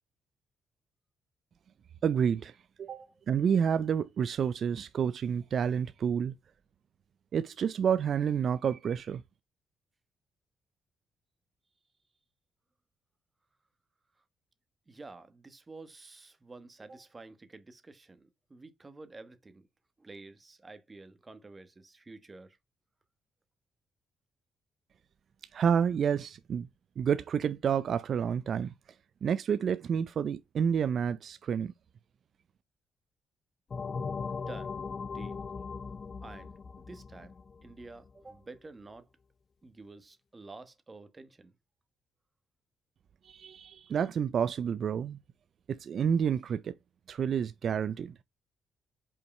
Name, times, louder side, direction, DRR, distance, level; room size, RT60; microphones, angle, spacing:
voice 1, 2.0-3.0 3.3-6.3 7.3-9.2 25.5-26.7 27.0-28.7 29.2-31.7 43.2-45.2 45.7-46.7 47.1-48.1, right 7 dB, 55° right, 0.4 m, -29 dB
voice 2, 2.9-3.2 14.9-19.7 20.0-22.6 34.4-34.7 35.0-35.4 36.2-36.5 36.8-37.3 37.6-39.1 39.6-41.5, right 3 dB, 25° right, 1.2 m, -50 dB
sound 1, 33.7-38.1, left 5 dB, 40° left, 0.5 m, -39 dB
5.5 x 4.7 x 4.2 m
cardioid pair, 90°, 0 cm